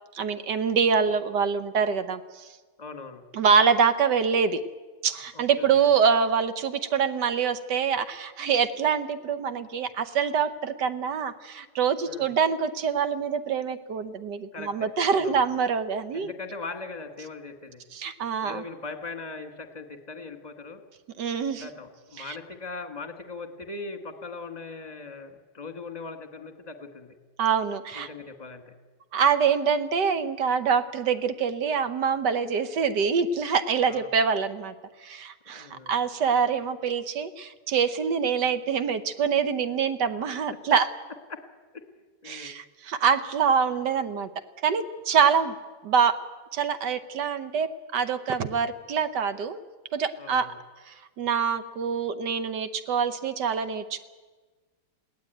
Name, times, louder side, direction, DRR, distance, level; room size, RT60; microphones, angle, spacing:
voice 1, 0.1-2.5 3.3-4.6 5.0-16.3 17.9-18.6 21.2-21.7 22.2-22.4 27.4-28.1 29.1-34.7 35.0-40.9 42.3-44.3 44.6-45.5 45.8-46.2 46.5-49.6 49.9-50.5 50.9-54.0, right 6 dB, 65° right, 12 dB, 1.4 m, -25 dB
voice 2, 2.8-3.2 5.3-5.9 12.1-12.3 14.5-15.4 16.1-17.8 18.4-20.8 21.6-27.1 27.9-28.7 33.9-34.1 35.5-35.9 42.2-42.6 50.1-50.6, left 3 dB, 20° left, 8 dB, 1.6 m, -40 dB
21.0 x 17.0 x 9.1 m, 1.4 s
omnidirectional pair, 2.1 m